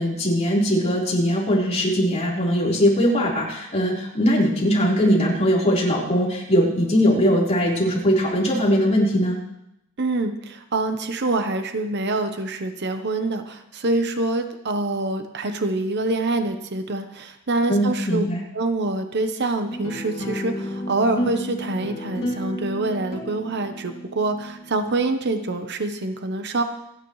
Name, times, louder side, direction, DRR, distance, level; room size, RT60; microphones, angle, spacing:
voice 1, 0.0-9.4 17.7-18.4, equal, 30° left, -4 dB, 4.2 m, -20 dB
voice 2, 10.0-18.2 18.5-26.6, right 2 dB, 50° right, 7 dB, 0.9 m, -25 dB
sound 1, 19.7-24.8, equal, 50° left, 3.2 m, -31 dB
28.0 x 10.0 x 3.2 m, 0.84 s
head